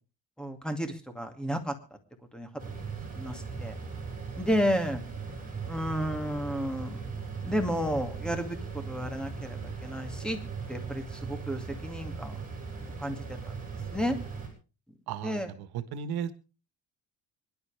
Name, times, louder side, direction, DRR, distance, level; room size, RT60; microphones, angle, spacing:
voice 1, 0.4-1.7 2.3-2.5 3.2-3.3 3.6-3.7 4.4-5.0 5.7-7.0 7.4-8.6 8.9-10.4 10.7-11.0 11.3-12.4 13.0-13.2 13.9-14.2 15.2-15.5, equal, ahead, 6 dB, 2.4 m, -31 dB
sound 1, 2.6-14.5, right 5 dB, 20° right, 7.6 m, -39 dB
voice 2, 15.1-16.3, right 8 dB, 80° right, 12 dB, 1.6 m, -35 dB
25.0 x 11.5 x 3.5 m, 0.34 s
cardioid pair, 125°, 37 cm